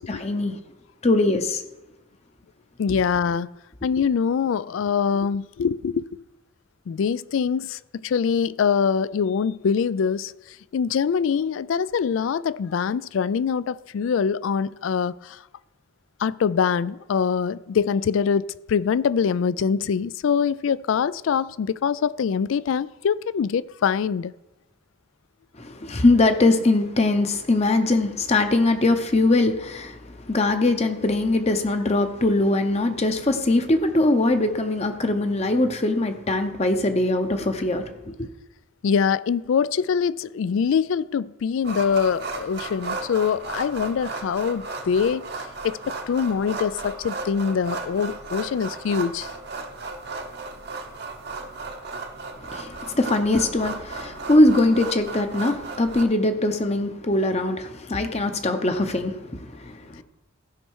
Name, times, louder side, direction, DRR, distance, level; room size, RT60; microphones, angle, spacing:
voice 1, 0.1-0.6 1.0-1.6 25.6-38.3 52.4-60.0, left 2 dB, 30° left, 0.7 m, -22 dB
voice 2, 2.8-3.5 3.8-6.2 6.9-10.3 10.7-15.4 16.2-24.3 38.8-45.2 45.6-49.3, left 6 dB, 70° left, 0.3 m, -24 dB
sound 1, 41.6-56.0, right 3 dB, 50° right, 0.9 m, -35 dB
15.5 x 5.5 x 4.7 m
head